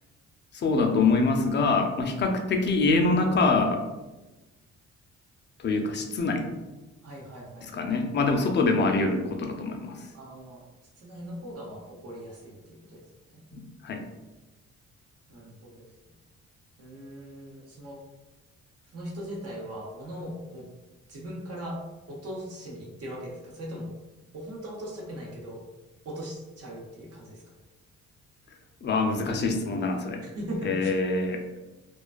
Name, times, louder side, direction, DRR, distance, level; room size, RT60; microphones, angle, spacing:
voice 1, 0.5-3.8 5.6-6.5 7.7-10.0 13.5-14.0 28.8-30.2 30.7-31.4, left 3 dB, 35° left, 4 dB, 0.4 m, -25 dB
voice 2, 7.0-7.9 10.1-10.6 11.0-13.0 13.3-13.4 15.3-15.9 16.8-18.0 18.9-20.6 21.1-21.8 22.1-23.9 24.3-25.6 26.0-27.4 30.2-30.9, equal, 55° right, -2 dB, 0.8 m, -39 dB
2.3 x 2.2 x 2.4 m, 1.1 s
cardioid pair, 90°, 30 cm